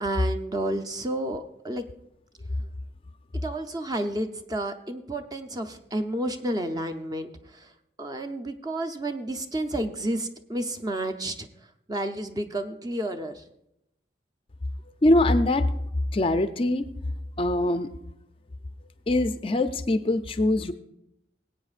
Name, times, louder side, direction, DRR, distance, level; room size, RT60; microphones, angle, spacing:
voice 1, 0.0-1.8 3.4-7.7 8.0-11.5 11.9-13.4, right 1 dB, 20° right, 7 dB, 0.6 m, -31 dB
voice 2, 15.0-15.7 16.1-16.9 17.4-17.9 19.1-20.7, left 1 dB, 30° left, 10 dB, 0.4 m, -23 dB
20.5 x 8.7 x 2.4 m, 0.82 s
head